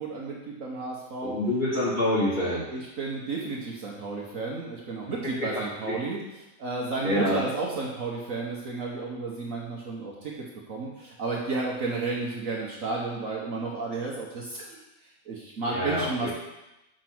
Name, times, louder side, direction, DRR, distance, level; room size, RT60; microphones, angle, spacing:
voice 1, 0.0-1.4 2.7-6.2 6.6-10.3 10.7-14.8 15.3-16.3, right 3 dB, 55° right, -3 dB, 1.4 m, -32 dB
voice 2, 1.2-2.6 7.0-7.4 15.7-16.3, left 1 dB, 25° left, -8 dB, 2.8 m, -26 dB
6.0 x 5.2 x 6.0 m, 0.94 s
omnidirectional pair, 1.8 m